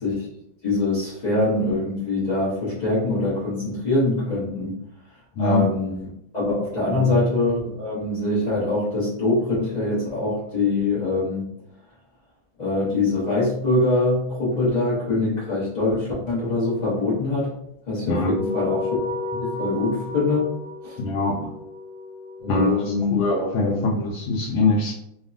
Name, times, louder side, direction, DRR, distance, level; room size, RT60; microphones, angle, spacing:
voice 1, 0.6-4.7 5.4-6.1 6.3-11.5 12.6-17.5 17.9-19.0 19.3-20.5 20.8-21.0 22.4-23.2 23.6-23.8, left 2 dB, 65° left, -9 dB, 0.4 m, -23 dB
sound 1, 18.2-23.0, left 3 dB, 85° right, 0.6 m, -32 dB
voice 2, 21.0-21.5 22.5-24.9, left 2 dB, 85° left, -4 dB, 1.4 m, -23 dB
3.4 x 2.0 x 2.4 m, 0.76 s
omnidirectional pair, 2.1 m